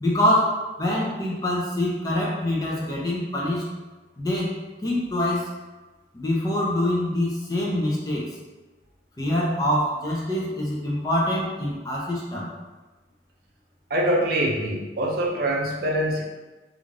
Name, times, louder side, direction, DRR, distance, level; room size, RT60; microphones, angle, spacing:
voice 1, 0.0-3.7 4.2-5.6 6.1-8.3 9.2-12.5, left 1 dB, 20° left, -4 dB, 0.5 m, -25 dB
voice 2, 13.9-16.2, right 1 dB, 50° right, -2 dB, 0.5 m, -24 dB
2.5 x 2.3 x 3.1 m, 1.2 s
head